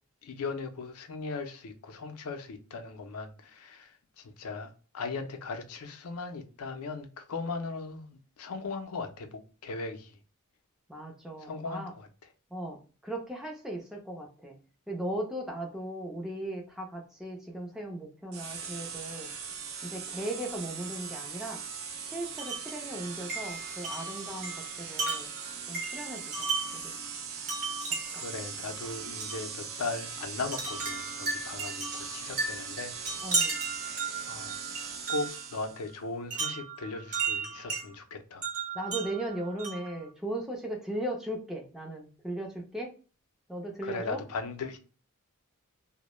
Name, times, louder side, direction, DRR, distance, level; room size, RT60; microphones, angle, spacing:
voice 1, 0.2-10.2 11.4-12.1 28.1-32.9 34.3-34.5 35.1-38.5 43.8-44.8, left 3 dB, 80° left, 0.5 m, -38 dB
voice 2, 10.9-11.9 12.5-14.6 14.9-19.3 19.8-21.6 22.0-25.3 25.7-27.0 28.2-28.3 33.2-33.6 38.7-42.9 43.5-44.2, right 1 dB, ahead, 0.4 m, -37 dB
sound 1, 18.3-35.9, right 6 dB, 65° right, 0.4 m, -40 dB
Wind chime, 22.4-22.8 23.3-26.9 27.5-28.3 29.2-29.5 30.5-35.4 36.3-37.9 38.4-39.9, right 4 dB, 35° right, 0.8 m, -34 dB
2.1 x 2.0 x 2.9 m
head